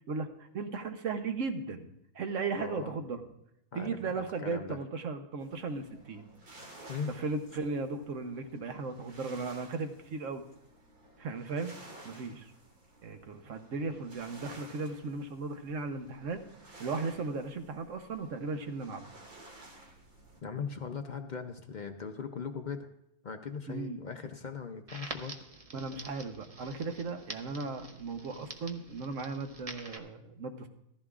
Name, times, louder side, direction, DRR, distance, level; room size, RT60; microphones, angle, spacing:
voice 1, 0.1-1.9 2.1-3.2 3.7-6.2 7.1-10.4 11.2-11.7 12.0-12.5 13.0-16.4 16.8-19.1 23.7-24.0 25.7-30.7, right 4 dB, 60° right, 7 dB, 1.2 m, -36 dB
voice 2, 2.6-3.0 3.7-4.8 6.9-7.1 20.4-22.9 23.2-25.3, left 6 dB, 50° left, 6 dB, 0.5 m, -39 dB
sound 1, 5.4-20.4, right 2 dB, 85° right, 2.3 m, -54 dB
Crackle, 24.9-30.0, right 2 dB, 30° right, 0.7 m, -46 dB
14.5 x 14.0 x 2.4 m, 0.79 s
omnidirectional pair, 1.6 m